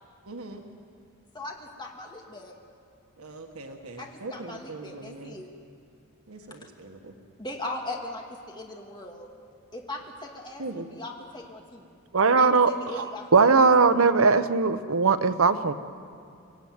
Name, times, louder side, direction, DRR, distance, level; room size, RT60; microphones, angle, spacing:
voice 1, 0.3-0.6 3.2-5.3 6.3-7.1 10.6-10.9, right 2 dB, 90° right, 4 dB, 1.5 m, -40 dB
voice 2, 1.3-2.5 4.0-5.5 7.4-9.3 9.7-11.9 12.4-13.3 13.6-13.7, left 2 dB, 20° left, 1 dB, 2.2 m, -39 dB
voice 3, 12.1-15.7, right 4 dB, 75° right, 11 dB, 0.9 m, -20 dB
24.5 x 15.0 x 9.5 m, 2.6 s
head